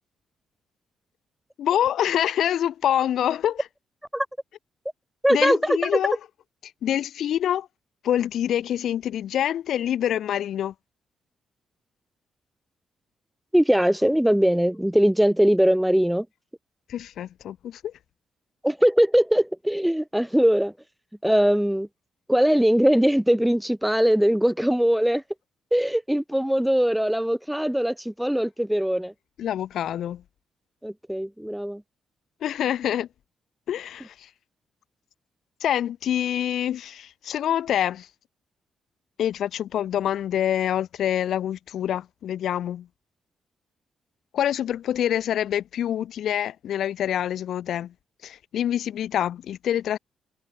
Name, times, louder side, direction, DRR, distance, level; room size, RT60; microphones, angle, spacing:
voice 1, 1.6-3.7 5.3-6.2 6.6-7.7 8.0-10.7 16.9-17.9 29.4-30.2 32.4-33.1 33.7-34.3 35.6-38.1 39.2-42.9 44.3-47.9 48.2-50.0, left 10 dB, 75° left, 6.8 m, -26 dB
voice 2, 5.2-5.9 13.5-16.3 18.6-20.7 21.2-21.9 22.3-25.2 25.7-29.1 30.8-31.8, equal, 5° right, 4.5 m, -21 dB
cardioid pair, 90°, 0 cm